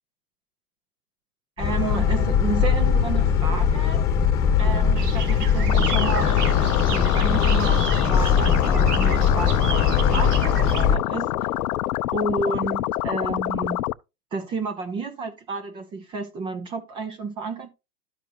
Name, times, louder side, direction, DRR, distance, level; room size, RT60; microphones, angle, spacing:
Boat Water vehicle, 1.6-11.0, left 7 dB, 20° left, 1.3 m, -21 dB
voice 1, 1.6-4.1 4.6-11.5 12.1-13.9 14.3-17.7, right 4 dB, 10° right, 0.5 m, -31 dB
sound 1, 5.0-10.9, right 7 dB, 75° right, 1.5 m, -34 dB
sound 2, 5.7-13.9, left 15 dB, 70° left, 0.6 m, -27 dB
12.5 x 4.9 x 2.5 m
hypercardioid pair, 140°, 47 cm